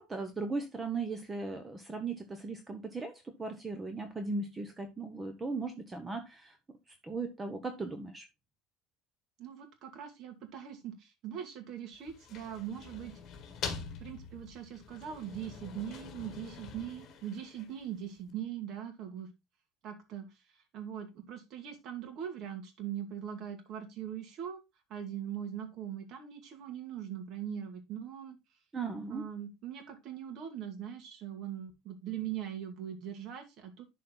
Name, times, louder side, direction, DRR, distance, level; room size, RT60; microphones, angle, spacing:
voice 1, 0.0-6.6 7.0-8.3 28.7-29.3, right 3 dB, 15° right, 6 dB, 1.0 m, -37 dB
voice 2, 9.4-13.1 14.0-19.3 19.8-20.3 20.7-24.6 24.9-28.4 29.1-33.8, right 9 dB, 50° right, 7 dB, 2.2 m, -41 dB
sound 1, 11.9-18.0, left 6 dB, 45° left, 2.2 m, -45 dB
11.5 x 4.2 x 3.8 m, 0.22 s
cardioid pair, 155°, 0 cm